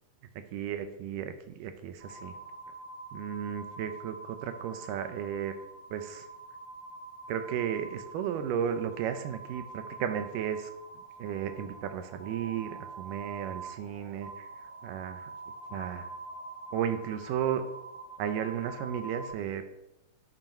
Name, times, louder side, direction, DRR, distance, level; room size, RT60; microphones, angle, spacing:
voice 1, 0.5-2.4 3.1-5.5 5.9-6.3 7.3-10.7 11.2-14.5 14.8-15.3 15.7-16.1 16.7-17.6 18.2-19.6, right 9 dB, 80° right, 9 dB, 2.3 m, -34 dB
sound 1, 2.0-19.3, right 3 dB, 60° right, 4.1 m, -45 dB
8.8 x 6.4 x 4.4 m, 0.83 s
omnidirectional pair, 3.9 m